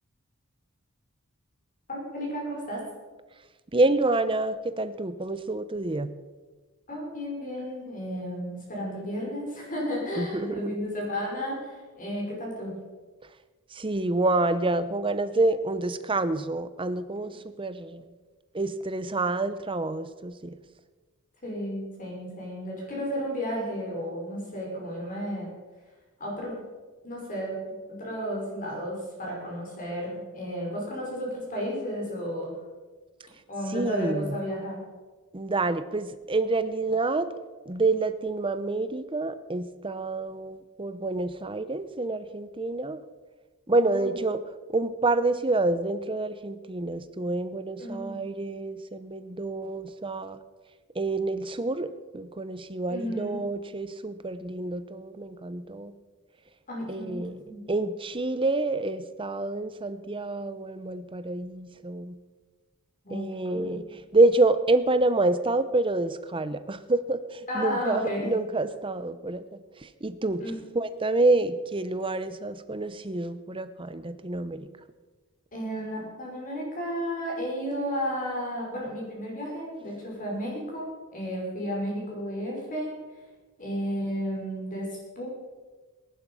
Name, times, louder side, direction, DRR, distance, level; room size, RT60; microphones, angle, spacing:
voice 1, 1.9-2.8 6.9-12.8 21.4-25.5 26.2-26.6 27.0-32.5 33.5-34.8 43.9-44.2 47.8-48.2 52.9-53.4 56.7-57.6 63.0-63.7 67.5-68.3 70.4-70.6 75.5-83.0 83.6-85.3, equal, 40° left, -3 dB, 5.4 m, -33 dB
voice 2, 3.7-6.1 10.2-10.8 13.7-18.0 18.5-20.6 33.7-34.4 35.3-37.3 37.7-43.0 43.7-44.4 44.7-50.4 51.0-55.9 56.9-57.4 57.7-62.2 63.1-63.8 64.1-69.4 69.8-70.4 70.7-74.7, right 2 dB, 25° right, 12 dB, 0.8 m, -27 dB
19.5 x 11.0 x 5.6 m, 1.3 s
head